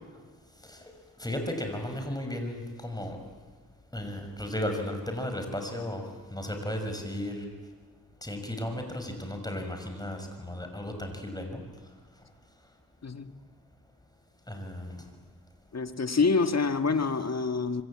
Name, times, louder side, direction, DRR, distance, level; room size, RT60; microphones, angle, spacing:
voice 1, 0.6-3.2 3.9-6.0 6.3-7.4 8.2-11.6 14.5-15.0, left 1 dB, 10° left, 4 dB, 6.1 m, -35 dB
voice 2, 13.0-13.3 15.7-17.8, left 4 dB, 45° left, 9 dB, 1.7 m, -26 dB
26.0 x 25.5 x 8.7 m, 1.5 s
cardioid pair, 75°, 35 cm